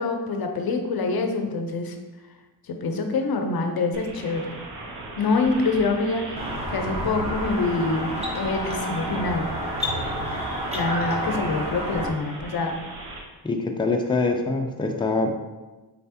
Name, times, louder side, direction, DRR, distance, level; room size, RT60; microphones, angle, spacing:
voice 1, 0.0-2.0 2.7-4.5 5.2-9.5 10.7-12.8, left 3 dB, 50° left, 5 dB, 0.7 m, -26 dB
sound 1, 3.9-13.2, right 2 dB, 90° right, 0.8 m, -37 dB
sound 2, 6.4-12.1, equal, 15° right, 1.1 m, -30 dB
voice 2, 13.4-15.3, left 3 dB, 10° left, 3 dB, 0.5 m, -24 dB
4.1 x 3.3 x 2.9 m, 1.2 s
supercardioid pair, 50°, 49 cm